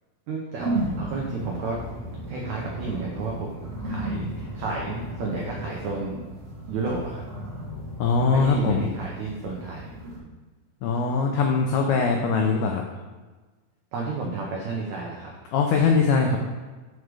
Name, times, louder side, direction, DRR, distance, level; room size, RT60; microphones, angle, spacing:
voice 1, 0.3-1.8 2.3-6.2 6.7-7.2 8.3-9.9 13.9-15.3, right 3 dB, 85° right, -2 dB, 1.6 m, -32 dB
sound 1, 0.6-10.2, right 1 dB, 40° right, 1.0 m, -34 dB
voice 2, 8.0-8.9 10.8-12.8 15.5-16.4, left 4 dB, 90° left, 2 dB, 1.8 m, -21 dB
6.3 x 4.9 x 4.8 m, 1.3 s
omnidirectional pair, 4.4 m